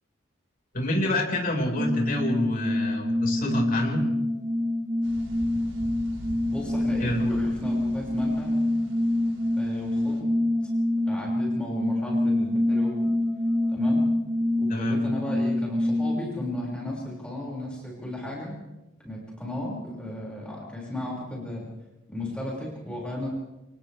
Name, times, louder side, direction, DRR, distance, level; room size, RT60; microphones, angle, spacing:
voice 1, 0.7-4.0 7.0-7.3 14.7-15.0, left 1 dB, 40° left, 0 dB, 5.2 m, -27 dB
sound 1, 1.8-16.3, left 1 dB, 15° right, 0.9 m, -26 dB
sound 2, 5.0-10.2, equal, 80° right, 6.9 m, -43 dB
voice 2, 6.5-8.6 9.6-10.3 11.1-13.1 13.7-14.0 14.6-18.5 19.0-21.7 22.1-23.3, left 1 dB, 5° left, -4 dB, 6.0 m, -35 dB
29.0 x 28.5 x 3.5 m, 1.0 s
head